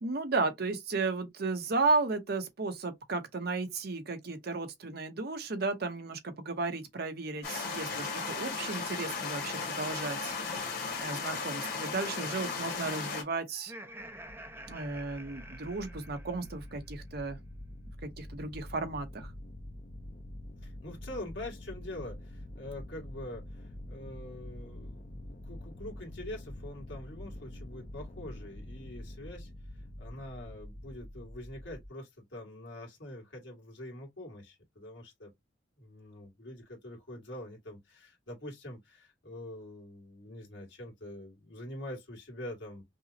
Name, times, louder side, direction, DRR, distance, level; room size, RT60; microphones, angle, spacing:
voice 1, 0.0-10.3 11.0-13.7 14.7-17.4 18.0-19.3, right 3 dB, 60° right, 0.8 m, -34 dB
sound 1, 7.4-13.2, left 4 dB, 60° left, 1.3 m, -36 dB
Laughter, 13.5-16.8, right 1 dB, 15° right, 0.5 m, -48 dB
sound 2, 13.9-31.9, left 1 dB, 45° left, 0.6 m, -46 dB
voice 2, 20.6-35.3 35.8-42.8, left 1 dB, 90° left, 1.8 m, -45 dB
5.4 x 2.0 x 2.7 m
head